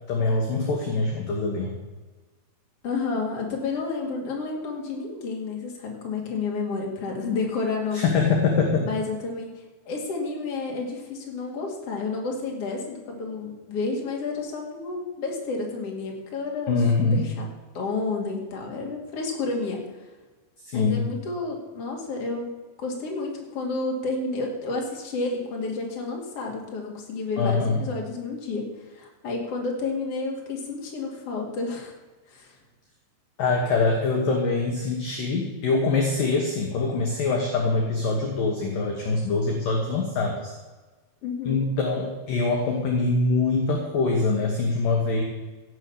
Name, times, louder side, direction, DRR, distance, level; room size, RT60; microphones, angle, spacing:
voice 1, 0.1-1.7 7.9-8.9 16.7-17.2 20.6-21.1 27.4-27.8 33.4-40.5 41.4-45.2, left 3 dB, 60° left, 1 dB, 2.5 m, -24 dB
voice 2, 2.8-8.1 8.8-9.5 9.9-16.8 17.1-17.5 17.7-19.8 20.7-22.5 22.8-31.9 32.3-32.5 41.2-41.7, left 3 dB, 40° left, 0 dB, 2.6 m, -30 dB
16.5 x 6.6 x 7.1 m, 1.3 s
omnidirectional pair, 5.3 m